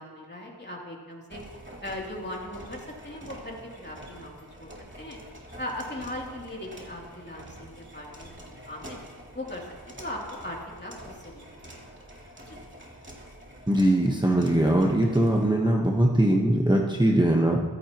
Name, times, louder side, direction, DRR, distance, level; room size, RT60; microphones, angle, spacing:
voice 1, 0.0-1.4 1.8-4.3 4.6-4.7 5.0-5.2 5.6-8.3 8.7-9.0 9.3-9.7 10.0-11.9 12.5-12.6, left 1 dB, 25° left, -2 dB, 3.1 m, -38 dB
sound 1, 1.3-15.5, right 1 dB, 30° right, 2.9 m, -46 dB
voice 2, 13.7-17.6, right 1 dB, 10° right, -1 dB, 1.3 m, -21 dB
15.0 x 13.5 x 3.1 m, 1.5 s
wide cardioid pair, 45°, 39 cm